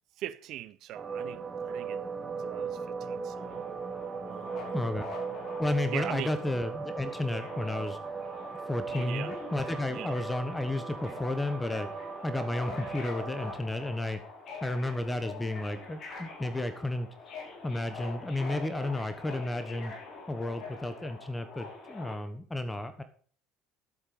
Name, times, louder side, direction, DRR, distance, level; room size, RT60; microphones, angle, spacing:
voice 1, 0.2-2.0 2.4-3.6 4.3-4.9 5.9-6.3 8.9-9.4 9.9-10.2, right 13 dB, 60° right, 0.7 m, -41 dB
sound 1, 0.9-13.6, right 5 dB, 30° right, 1.6 m, -38 dB
Subway metro underground, 3.3-22.1, left 4 dB, 45° left, 5.4 m, -45 dB
voice 2, 4.7-5.1 5.6-8.0 8.7-11.9 12.2-14.2 14.6-17.1 17.6-19.9 20.3-23.0, left 2 dB, 10° left, 1.3 m, -32 dB
11.5 x 8.3 x 5.1 m
hypercardioid pair, 65°, 0 cm